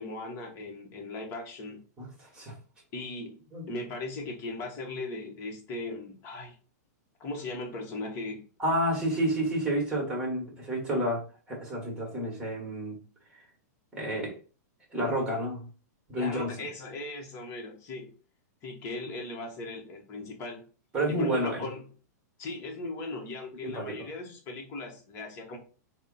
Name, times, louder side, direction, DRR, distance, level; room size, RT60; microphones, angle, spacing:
voice 1, 0.0-1.8 2.9-6.5 7.2-8.4 16.2-18.1 18.6-20.6 21.1-21.8 22.4-25.6, left 2 dB, 25° left, 1 dB, 1.0 m, -38 dB
voice 2, 2.0-2.5 3.5-3.6 8.6-13.0 13.3-13.4 13.9-14.4 14.9-15.7 16.1-16.7 20.9-21.7 23.6-24.0, right 1 dB, 10° right, 0 dB, 1.4 m, -30 dB
4.1 x 2.1 x 3.8 m, 0.37 s
supercardioid pair, 160°, 9 cm